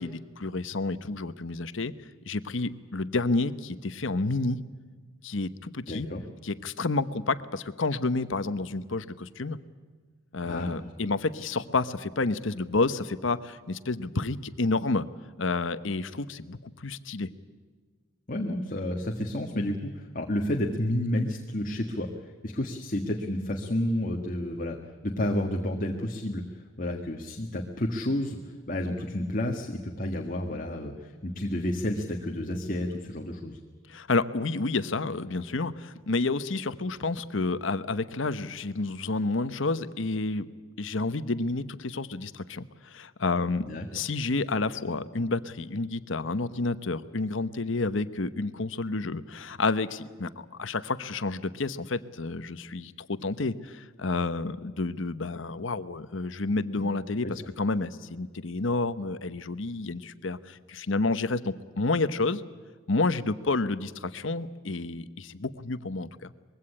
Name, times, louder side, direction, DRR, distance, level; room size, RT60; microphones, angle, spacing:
voice 1, 0.0-1.9 2.3-4.6 5.2-6.1 6.4-9.6 10.3-15.1 15.4-17.3 33.9-40.5 40.8-43.7 43.9-62.4 62.9-66.3, left 3 dB, 70° left, 13 dB, 1.0 m, -30 dB
voice 2, 5.9-6.2 10.4-10.7 18.3-22.1 22.4-24.8 25.0-33.6 43.6-43.8 56.8-56.9 57.2-57.3, left 1 dB, 40° left, 2 dB, 1.6 m, -30 dB
22.0 x 16.5 x 9.9 m, 1.5 s
head